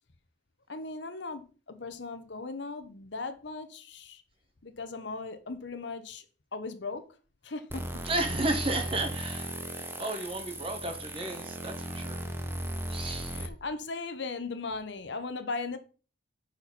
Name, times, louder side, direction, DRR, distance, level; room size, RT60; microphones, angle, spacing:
voice 1, 0.7-4.2 4.6-6.2 6.5-7.1 7.4-8.0 13.3-15.8, left 3 dB, 65° left, 1.0 m, -38 dB
sound 1, 7.7-13.5, right 1 dB, 10° right, 0.8 m, -36 dB
voice 2, 8.0-12.3 12.9-13.4, right 2 dB, 30° right, 1.5 m, -33 dB
10.5 x 4.6 x 4.1 m
head